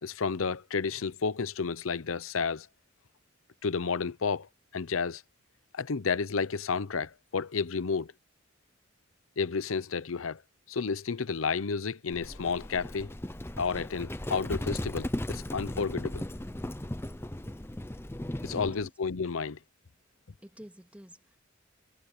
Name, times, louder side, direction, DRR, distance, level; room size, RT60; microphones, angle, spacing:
voice 1, 0.0-2.7 3.6-5.2 5.7-8.1 9.4-10.4 10.7-13.1 13.6-16.2 18.4-19.6, left 5 dB, 90° left, 0.7 m, -31 dB
Livestock farm animals working animals, 12.1-18.8, left 1 dB, 10° left, 0.7 m, -37 dB
voice 2, 18.5-18.9 20.4-21.4, equal, 5° right, 2.3 m, -49 dB
head